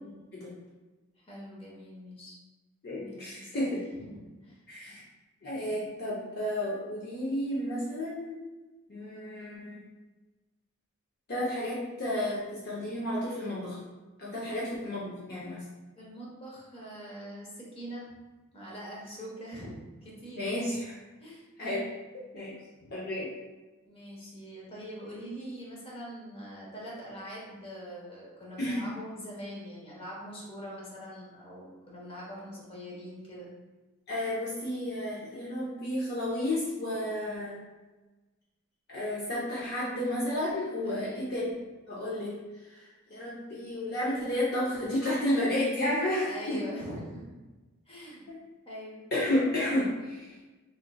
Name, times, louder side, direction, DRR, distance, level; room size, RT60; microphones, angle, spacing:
voice 1, 0.0-0.5 2.8-3.8 4.7-5.0 5.4-8.4 8.9-9.8 11.3-13.8 14.2-15.6 20.4-20.8 21.6-21.9 22.3-22.6 22.9-23.3 28.6-28.8 34.1-37.6 38.9-41.5 41.9-42.3 42.7-46.6 48.3-48.4 49.1-50.4, left 1 dB, 50° left, -7 dB, 0.7 m, -32 dB
voice 2, 1.3-2.3 3.0-4.6 15.9-18.1 18.5-20.7 21.2-21.5 22.8-22.9 23.9-33.5 40.8-41.3 46.3-47.3 47.9-48.2 48.6-49.0, equal, 25° left, -4 dB, 1.0 m, -43 dB
3.8 x 3.7 x 2.2 m, 1.2 s
head